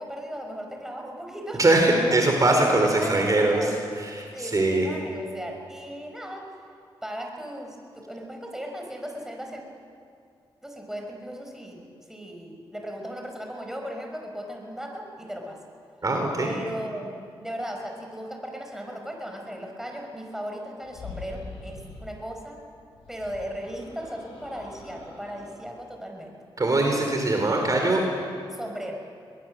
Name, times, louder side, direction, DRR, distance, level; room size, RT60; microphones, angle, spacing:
voice 1, 0.0-2.2 2.6-3.7 4.3-6.5 7.0-9.6 10.6-11.8 12.1-15.6 16.4-22.6 23.1-26.4 28.5-29.0, equal, 5° right, 2 dB, 5.4 m, -37 dB
voice 2, 1.6-3.6 4.0-4.9 16.0-16.5 26.6-28.0, right 2 dB, 35° right, 2 dB, 4.1 m, -22 dB
sound 1, 20.8-22.1 22.9-25.6, left 3 dB, 85° left, 7.1 m, -43 dB
21.5 x 20.5 x 7.7 m, 2.3 s
cardioid pair, 55°, 10 cm